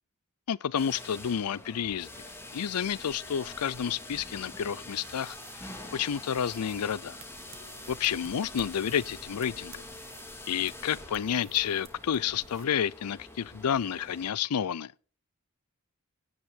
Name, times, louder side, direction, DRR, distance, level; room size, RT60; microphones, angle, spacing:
voice 1, 0.5-2.1 2.5-7.2 7.9-9.8 10.5-14.9, left 8 dB, 90° left, 0.5 m, -30 dB
sound 1, 0.8-14.3, left 2 dB, 10° left, 2.4 m, -45 dB
sound 2, 4.5-12.6, right 5 dB, 60° right, 2.0 m, -53 dB
16.5 x 9.7 x 3.6 m
head